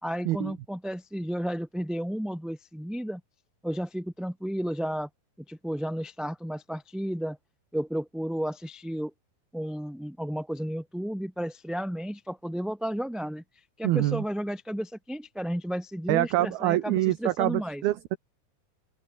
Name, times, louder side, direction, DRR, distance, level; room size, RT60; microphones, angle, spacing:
voice 1, 0.0-3.2 3.6-5.1 5.5-7.4 7.7-9.1 9.5-13.4 13.8-17.8, equal, ahead, 3.1 m, -32 dB
voice 2, 13.8-14.2 16.1-18.2, right 15 dB, 75° right, 2.8 m, -25 dB
open air
omnidirectional pair, 4.7 m